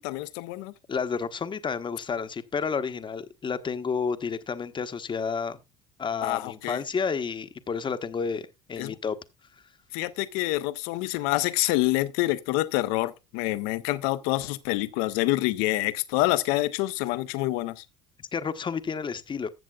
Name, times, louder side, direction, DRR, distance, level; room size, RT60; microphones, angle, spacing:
voice 1, 0.0-0.7 6.2-6.8 8.8-9.0 9.9-17.8, left 18 dB, 75° left, 0.8 m, -27 dB
voice 2, 0.9-5.6 6.0-9.2 18.3-19.5, left 5 dB, 30° left, 0.9 m, -30 dB
14.0 x 7.4 x 2.3 m
hypercardioid pair, 75°, 17 cm